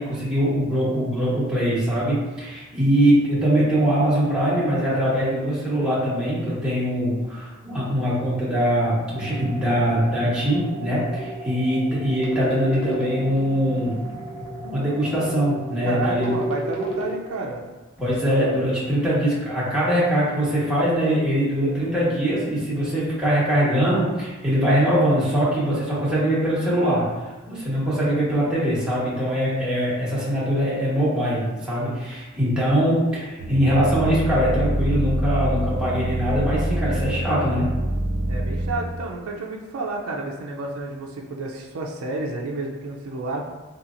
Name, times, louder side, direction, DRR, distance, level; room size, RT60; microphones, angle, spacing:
voice 1, 0.0-14.0 14.6-16.3 18.0-27.1 27.5-37.8, equal, 5° right, -9 dB, 1.0 m, -22 dB
sound 1, 9.1-17.1, right 1 dB, 25° left, 0.5 m, -32 dB
voice 2, 15.8-17.7 38.3-43.5, right 2 dB, 65° right, -1 dB, 0.4 m, -30 dB
sound 2, 33.4-38.8, right 1 dB, 60° left, 1.4 m, -25 dB
3.8 x 2.8 x 2.5 m, 1.2 s
head